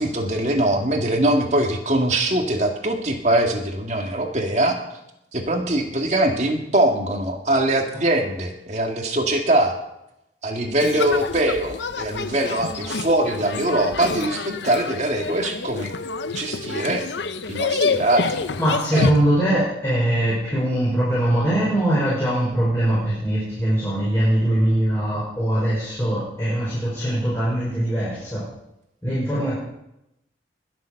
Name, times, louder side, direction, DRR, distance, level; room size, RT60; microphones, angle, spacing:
voice 1, 0.0-4.8 5.3-9.8 10.4-15.9 16.3-17.0 17.5-18.4 18.9-19.1, right 1 dB, 40° right, 3 dB, 2.2 m, -22 dB
sound 1, 10.8-19.1, left 4 dB, 75° left, 0.7 m, -27 dB
voice 2, 18.6-28.4 29.0-29.6, right 1 dB, 15° left, -8 dB, 5.7 m, -22 dB
21.5 x 7.6 x 6.6 m, 0.86 s
head